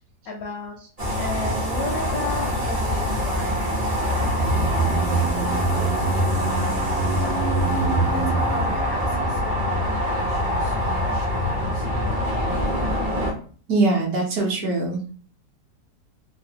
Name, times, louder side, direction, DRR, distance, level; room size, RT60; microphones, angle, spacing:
voice 1, 0.2-0.8 1.2-12.2, left 2 dB, 70° left, 0 dB, 0.8 m, -37 dB
sound 1, 1.0-13.3, left 1 dB, 45° right, 0.5 m, -24 dB
sound 2, 3.8-10.3 10.5-10.6, right 3 dB, 85° right, 1.3 m, -26 dB
voice 2, 13.7-15.1, right 3 dB, 65° right, -2 dB, 1.1 m, -22 dB
3.2 x 2.0 x 2.7 m, 0.43 s
omnidirectional pair, 1.9 m